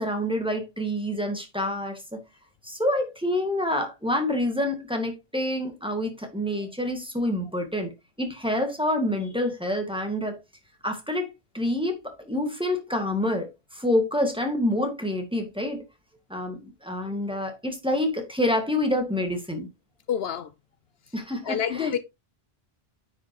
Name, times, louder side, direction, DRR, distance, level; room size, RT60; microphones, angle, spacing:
voice 1, 0.0-2.2 2.6-7.9 8.2-10.4 10.8-15.8 16.3-19.7 21.1-21.9, left 1 dB, 5° right, 1.8 m, -27 dB
voice 2, 20.1-20.5 21.4-22.0, left 8 dB, 70° left, 0.9 m, -27 dB
9.7 x 5.7 x 3.0 m
omnidirectional pair, 1.1 m